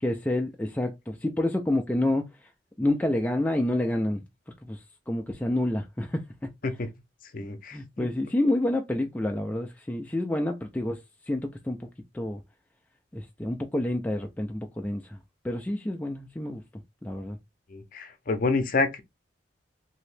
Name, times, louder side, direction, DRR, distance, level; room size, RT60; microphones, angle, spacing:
voice 1, 0.0-2.2 2.8-6.5 7.7-11.9 12.1-12.4 13.1-15.2 15.4-16.6 17.0-17.4, left 1 dB, 10° left, 0.3 m, -28 dB
voice 2, 7.3-8.1 17.7-19.0, left 3 dB, 45° left, 0.6 m, -28 dB
3.0 x 2.7 x 3.3 m
head